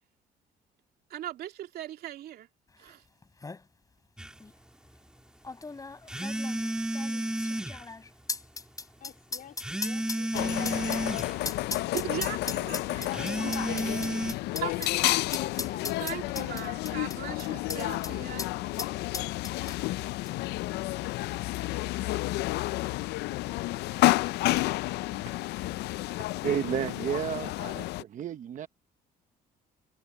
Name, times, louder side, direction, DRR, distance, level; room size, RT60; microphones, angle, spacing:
voice 1, 1.1-2.5 2.8-3.0 11.9-13.5 13.8-13.9 14.6-15.0 16.0-18.5, right 12 dB, 70° right, 2.6 m, -39 dB
sound 1, 2.9-3.0 3.2-3.6 4.4-4.5 5.4-18.1 18.4-18.5 18.8-20.0 20.3-20.4, left 3 dB, 20° left, 6.0 m, -38 dB
sound 2, 4.2-4.3 6.1-7.8 9.6-11.4 13.1-14.3, right 1 dB, 5° right, 1.8 m, -32 dB
voice 2, 9.0-10.7 12.6-14.1 15.3-16.3, left 10 dB, 55° left, 2.8 m, -47 dB
sound 3, 10.3-28.0, left 18 dB, 80° left, 0.5 m, -31 dB
voice 3, 26.4-28.7, right 10 dB, 50° right, 0.8 m, -32 dB
cardioid pair, 110°, 17 cm